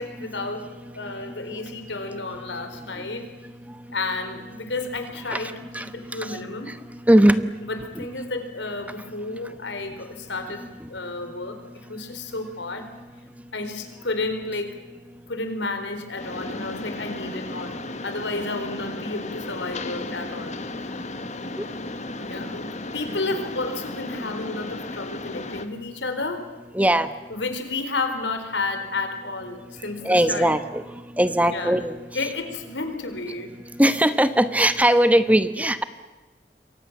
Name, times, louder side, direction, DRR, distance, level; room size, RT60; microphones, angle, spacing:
voice 1, 0.0-3.3 3.9-6.7 7.2-11.6 11.9-12.9 13.5-14.7 15.3-20.5 22.2-26.4 27.3-30.6 31.4-31.7 32.1-33.6, left 3 dB, 85° left, 7 dB, 4.2 m, -31 dB
voice 2, 7.1-7.4 26.7-27.1 30.0-30.8 31.2-32.0 33.8-35.8, right 1 dB, 10° right, 11 dB, 1.0 m, -19 dB
Mechanisms, 16.2-25.7, left 2 dB, 40° left, 1.7 m, -34 dB
28.0 x 23.5 x 7.3 m, 1.2 s
head